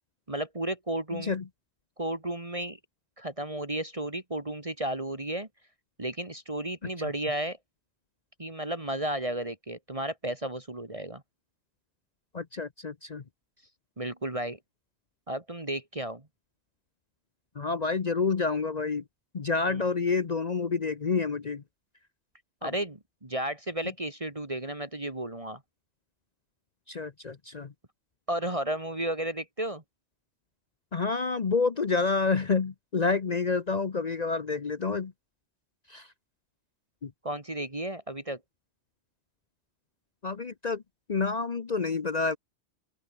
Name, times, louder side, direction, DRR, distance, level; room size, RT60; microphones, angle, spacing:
voice 1, 0.3-1.4 2.0-2.8 3.2-5.5 6.0-7.6 8.4-11.2 14.0-14.6 15.3-16.2 19.7-19.8 22.6-25.6 28.3-29.8 37.2-38.4, right 1 dB, 30° right, 2.2 m, -33 dB
voice 2, 1.1-1.4 12.3-13.2 17.6-19.0 19.3-21.6 22.6-22.7 26.9-27.7 30.9-35.1 35.9-36.0 37.0-37.1 40.2-40.8 41.1-42.4, left 4 dB, 40° left, 0.9 m, -28 dB
omnidirectional pair, 1.2 m